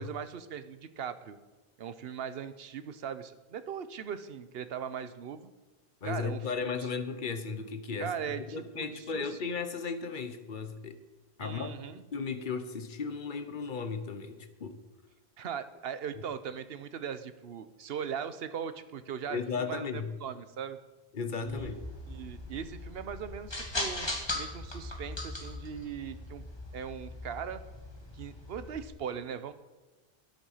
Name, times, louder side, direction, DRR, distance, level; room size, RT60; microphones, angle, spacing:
voice 1, 0.0-1.4 1.8-5.5 6.0-6.4 6.8-6.9 8.0-9.3 11.4-12.0 15.4-20.8 21.4-21.7 22.1-26.4 26.7-27.6 28.1-29.5, right 7 dB, 70° right, 12 dB, 1.0 m, -39 dB
voice 2, 6.0-11.0 11.4-11.7 12.1-14.8 19.3-20.1 21.1-21.8, left 5 dB, 55° left, 9 dB, 1.1 m, -35 dB
sound 1, 21.5-28.8, left 2 dB, 25° left, 1.8 m, -39 dB
13.0 x 10.0 x 5.6 m, 1.2 s
omnidirectional pair, 1.1 m